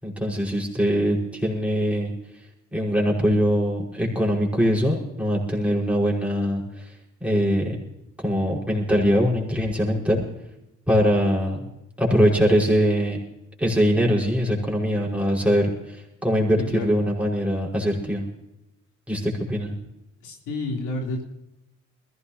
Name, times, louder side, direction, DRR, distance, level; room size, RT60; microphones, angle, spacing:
voice 1, 0.0-2.1 2.7-6.9 7.2-7.8 8.2-10.2 10.9-11.6 12.0-13.2 13.6-18.2 19.1-19.7, equal, 5° right, -3 dB, 5.2 m, -22 dB
voice 2, 20.2-21.2, left 2 dB, 90° left, 0 dB, 3.4 m, -29 dB
21.0 x 16.0 x 2.9 m, 0.88 s
cardioid pair, 90°, 30 cm